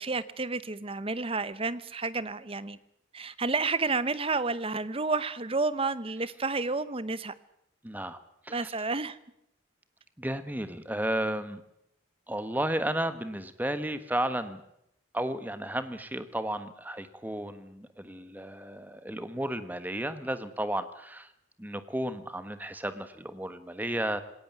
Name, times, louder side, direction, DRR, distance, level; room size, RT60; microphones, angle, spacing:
voice 1, 0.0-2.8 3.1-7.3 8.5-9.2, right 3 dB, 30° right, 16 dB, 0.9 m, -30 dB
voice 2, 7.8-8.2 8.4-8.7 10.2-11.6 12.3-14.6 15.1-21.3 21.6-24.2, right 1 dB, 10° right, 11 dB, 1.3 m, -33 dB
19.5 x 18.0 x 9.6 m, 0.77 s
head